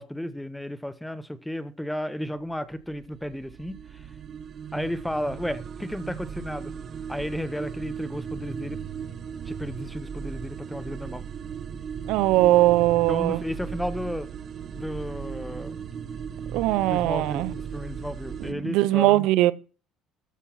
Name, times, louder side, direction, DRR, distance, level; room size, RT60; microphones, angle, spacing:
voice 1, 0.0-4.1 4.7-6.7 7.1-8.8 9.5-11.2 13.1-14.3 14.7-15.8 16.8-19.3, equal, 5° left, 0.8 m, -33 dB
sound 1, 2.7-18.5, right 7 dB, 40° right, 1.0 m, -37 dB
voice 2, 12.1-13.4 16.5-17.5 18.5-19.5, right 16 dB, 75° right, 0.6 m, -21 dB
13.5 x 6.2 x 5.8 m
cardioid pair, 130°, 0 cm